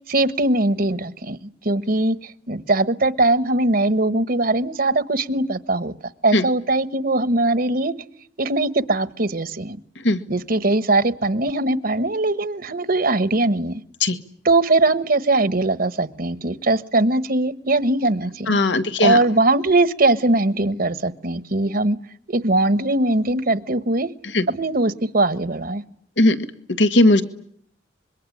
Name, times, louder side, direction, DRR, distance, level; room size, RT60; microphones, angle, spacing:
voice 1, 0.1-5.9 6.2-7.9 8.4-9.8 10.3-13.8 14.4-18.6 19.0-22.0 22.3-24.1 24.5-25.8, right 2 dB, 55° right, 1.2 m, -20 dB
voice 2, 18.5-19.2 24.3-24.5 26.2-26.5 26.8-27.2, left 2 dB, 85° left, 1.8 m, -17 dB
26.0 x 22.5 x 9.9 m
head